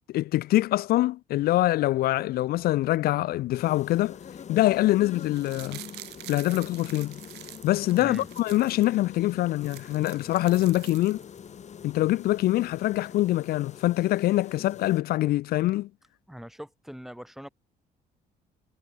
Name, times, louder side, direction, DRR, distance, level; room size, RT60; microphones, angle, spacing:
voice 1, 0.1-4.2 4.5-5.8 6.3-7.2 7.6-11.2 11.8-15.9, left 16 dB, 65° left, 0.4 m, -24 dB
sound 1, 2.6-13.1, right 3 dB, 20° right, 4.6 m, -64 dB
sound 2, 3.5-15.0, left 8 dB, 45° left, 3.4 m, -44 dB
sound 3, 5.2-8.9 9.3-9.4 9.6-11.5 11.8-11.9, right 18 dB, 85° right, 3.1 m, -46 dB
voice 2, 8.0-8.3 16.3-17.5, equal, ahead, 1.1 m, -41 dB
cardioid pair, 110°, 17 cm